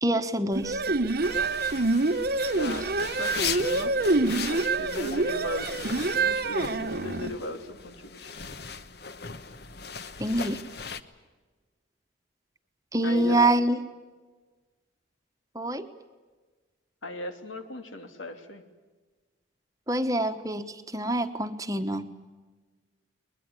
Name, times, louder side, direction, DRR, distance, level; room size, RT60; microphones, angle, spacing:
voice 1, 0.0-0.8 10.2-10.6 12.9-13.8 15.5-15.9 19.9-22.1, right 1 dB, 20° right, 7 dB, 1.2 m, -26 dB
sound 1, 0.6-7.3, right 3 dB, 50° right, 1.0 m, -26 dB
sound 2, 1.2-11.0, left 6 dB, 55° left, 1.2 m, -38 dB
voice 2, 2.5-3.9 4.5-8.3 13.0-13.4 17.0-18.6, left 1 dB, 90° left, 6 dB, 2.9 m, -37 dB
22.0 x 21.5 x 9.7 m, 1.3 s
head